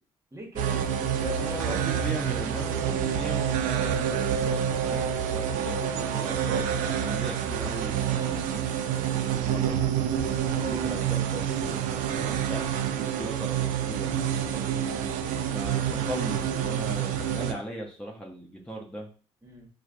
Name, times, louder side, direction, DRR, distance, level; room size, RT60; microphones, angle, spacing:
voice 1, 0.3-2.0 10.5-10.8 14.5-14.9 19.4-19.7, right 1 dB, 25° right, 1 dB, 1.1 m, -40 dB
sound 1, 0.6-17.5, right 9 dB, 80° right, 0.4 m, -28 dB
voice 2, 1.3-10.1 10.7-14.1 15.5-19.1, equal, 10° left, -3 dB, 0.8 m, -39 dB
4.5 x 2.2 x 2.6 m, 0.39 s
supercardioid pair, 60°, 13 cm